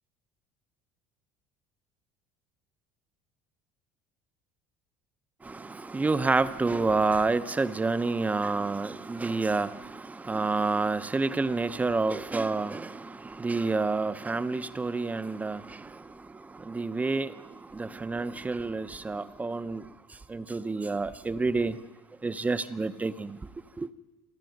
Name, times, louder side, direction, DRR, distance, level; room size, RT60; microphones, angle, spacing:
voice 1, 5.4-16.0 16.6-17.4 17.7-19.8 20.3-21.8 22.2-23.4 23.8-23.9, right 3 dB, 10° right, 13 dB, 0.7 m, -29 dB
29.0 x 11.5 x 9.3 m, 1.3 s
cardioid pair, 150°, 12 cm